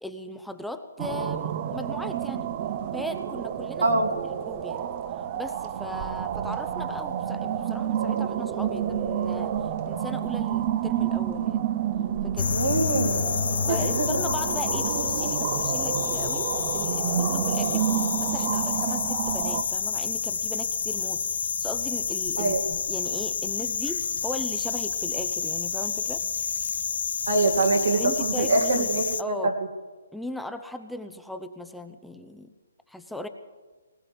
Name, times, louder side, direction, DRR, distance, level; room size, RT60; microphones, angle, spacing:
voice 1, 0.0-2.5 2.9-3.9 4.4-4.9 5.4-9.5 9.9-11.7 12.2-12.5 13.7-26.2 27.9-29.5 30.1-32.5 32.9-33.3, left 1 dB, ahead, 7 dB, 0.7 m, -37 dB
sound 1, 1.0-19.6, right 9 dB, 35° right, 0.7 m, -29 dB
sound 2, 12.4-29.2, left 6 dB, 60° left, 0.5 m, -29 dB
voice 2, 12.5-13.2 13.7-14.1 22.4-22.6 27.3-29.5, right 3 dB, 70° right, 2 dB, 2.3 m, -24 dB
20.0 x 19.5 x 3.5 m, 1.3 s
figure-of-eight pair, 140°, 0 cm